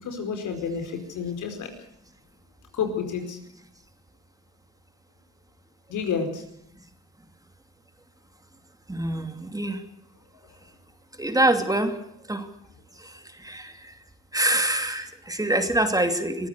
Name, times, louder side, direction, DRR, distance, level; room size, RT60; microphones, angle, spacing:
voice 1, 0.0-1.7 2.7-3.4 5.9-6.4, left 6 dB, 75° left, 6 dB, 5.0 m, -30 dB
voice 2, 8.9-9.8 11.2-11.9 12.3-12.5 13.4-13.7 14.3-16.5, right 1 dB, 10° right, 7 dB, 2.6 m, -24 dB
23.0 x 14.5 x 8.2 m, 0.75 s
cardioid pair, 90°, 30 cm